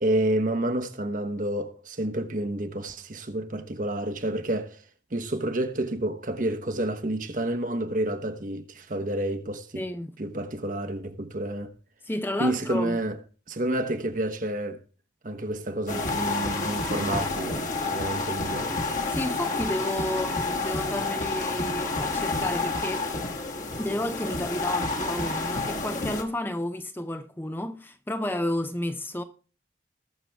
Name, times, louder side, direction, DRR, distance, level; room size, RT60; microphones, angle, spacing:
voice 1, 0.0-4.8 5.1-9.8 10.2-11.7 12.4-13.2 13.5-14.8 15.2-18.8, right 1 dB, 45° right, 1.1 m, -29 dB
voice 2, 9.8-10.1 12.0-13.0 19.1-23.1 23.8-29.2, left 1 dB, 10° left, 0.6 m, -31 dB
sound 1, 15.9-26.2, left 3 dB, 45° left, 1.6 m, -29 dB
20.0 x 6.8 x 3.4 m
head